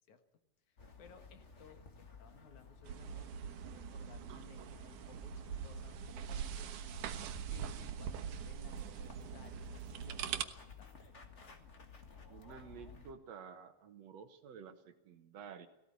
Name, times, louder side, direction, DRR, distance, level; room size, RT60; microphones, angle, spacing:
voice 1, 0.7-6.8 7.2-10.9, left 7 dB, 70° left, 8 dB, 3.0 m, -61 dB
sound 1, 0.8-13.1, left 4 dB, 30° left, 1.5 m, -56 dB
sound 2, 2.8-10.4, right 8 dB, 80° right, 2.6 m, -43 dB
voice 2, 12.3-15.7, right 6 dB, 65° right, 9 dB, 2.2 m, -51 dB
18.0 x 15.5 x 9.6 m, 0.92 s
omnidirectional pair, 3.6 m